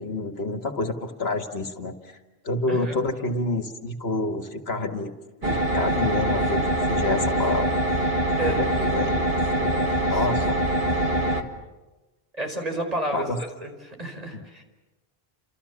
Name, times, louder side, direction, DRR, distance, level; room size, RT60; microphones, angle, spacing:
voice 1, 0.0-2.2 2.4-5.1 5.4-7.7 8.5-10.6 13.1-13.4 14.3-14.4, left 2 dB, 85° left, 6 dB, 2.2 m, -28 dB
sound 1, 5.4-11.4, right 1 dB, 70° right, 2.2 m, -24 dB
voice 2, 8.3-8.7 10.0-10.2 12.3-14.6, right 1 dB, 40° right, 3 dB, 5.1 m, -31 dB
30.0 x 27.5 x 7.3 m, 1.1 s
omnidirectional pair, 1.0 m